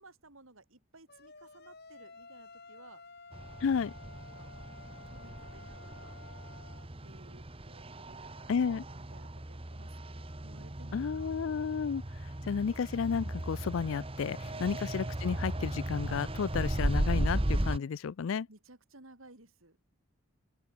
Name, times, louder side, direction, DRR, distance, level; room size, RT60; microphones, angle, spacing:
voice 1, 0.0-3.0 3.7-4.6 5.0-6.2 7.0-11.3 18.5-19.9, right 2 dB, 70° right, 3.9 m, -58 dB
sound 1, 1.1-6.9, left 4 dB, 50° left, 3.1 m, -53 dB
sound 2, 3.3-17.8, right 1 dB, 25° right, 1.4 m, -36 dB
voice 2, 3.6-3.9 8.5-8.8 10.9-18.5, left 6 dB, 65° left, 0.4 m, -32 dB
open air
head